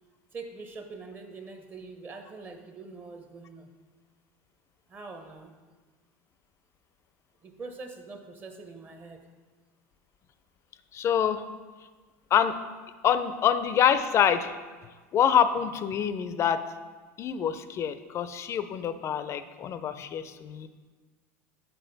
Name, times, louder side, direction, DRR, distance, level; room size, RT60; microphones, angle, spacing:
voice 1, 0.3-3.7 4.9-5.6 7.4-9.2, right 3 dB, 25° right, 5 dB, 0.7 m, -43 dB
voice 2, 10.9-11.4 12.3-12.6 13.0-14.6 15.1-16.6 17.2-20.7, left 8 dB, 35° left, 12 dB, 0.4 m, -26 dB
6.8 x 4.0 x 3.9 m, 1.4 s
supercardioid pair, 105°, 8 cm